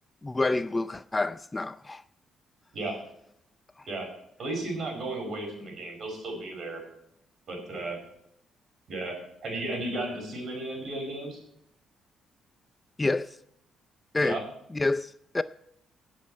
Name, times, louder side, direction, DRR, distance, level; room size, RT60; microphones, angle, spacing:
voice 1, 0.2-2.0 13.0-13.4 14.1-14.4 14.7-15.4, left 2 dB, 20° left, 0.4 m, -28 dB
voice 2, 4.4-6.8 7.5-8.0 8.9-9.2 9.4-11.4 14.2-14.4, right 2 dB, 55° right, 5.4 m, -34 dB
18.0 x 7.5 x 4.3 m
cardioid pair, 90°, 0 cm